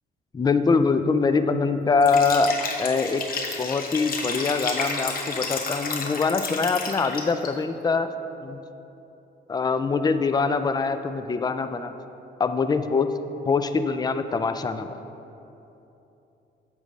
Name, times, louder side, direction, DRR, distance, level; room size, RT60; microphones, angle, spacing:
voice 1, 0.3-2.5 2.8-3.2 3.6-8.1 8.4-8.6 9.5-11.9 12.4-13.1 13.4-14.9, left 4 dB, 20° left, 10 dB, 0.4 m, -23 dB
Liquid, 2.0-7.5, left 4 dB, 45° left, 0.9 m, -31 dB
8.7 x 3.2 x 6.3 m, 3.0 s
cardioid pair, 90°, 20 cm